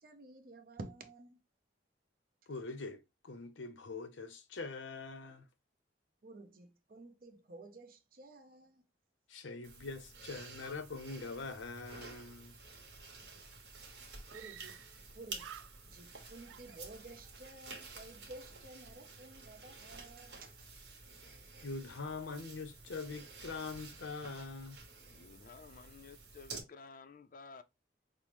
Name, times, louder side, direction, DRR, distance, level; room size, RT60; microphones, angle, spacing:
voice 1, 0.0-1.4 6.2-8.9 14.3-14.8 15.1-15.5 15.8-20.7, right 2 dB, 50° right, 0.6 m, -52 dB
voice 2, 2.5-5.5 9.3-12.6 21.6-24.8, left 4 dB, 90° left, 0.7 m, -43 dB
sound 1, 9.6-26.6, right 3 dB, 65° right, 1.2 m, -51 dB
Screaming, 13.5-13.6 14.3-15.1 15.3-16.1 16.5-17.4, right 9 dB, 90° right, 0.3 m, -53 dB
voice 3, 25.1-27.6, left 4 dB, 45° left, 0.4 m, -53 dB
5.5 x 2.0 x 3.0 m
head